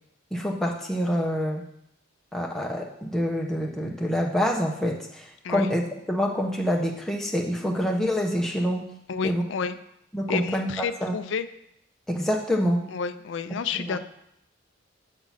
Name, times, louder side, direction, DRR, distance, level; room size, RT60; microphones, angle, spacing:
voice 1, 0.3-1.6 2.3-5.8 6.1-8.8 9.2-9.4 10.1-11.2 12.1-12.8, equal, ahead, -1 dB, 0.8 m, -26 dB
voice 2, 9.1-9.8 10.3-11.5 12.9-14.0, left 5 dB, 60° left, 12 dB, 0.4 m, -30 dB
7.3 x 3.8 x 5.6 m, 0.79 s
head